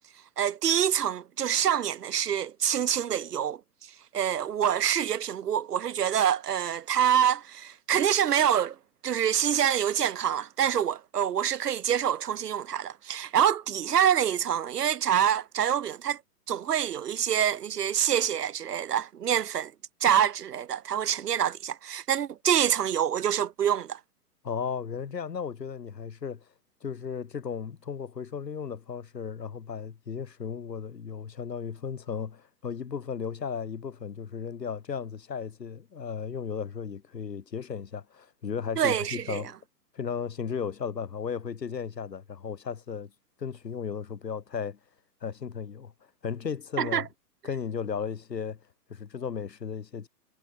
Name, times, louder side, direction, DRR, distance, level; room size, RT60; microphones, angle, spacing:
voice 1, 0.4-3.6 4.1-8.7 9.0-16.2 16.5-19.7 20.0-24.0 38.8-39.4 46.8-47.0, right 9 dB, 75° right, 1.2 m, -26 dB
voice 2, 24.4-26.4 26.8-39.6 39.9-43.1 43.4-44.8 45.2-45.9 46.2-47.1 47.4-48.6 48.9-50.1, left 6 dB, 85° left, 2.6 m, -35 dB
hypercardioid pair, 135°, 48 cm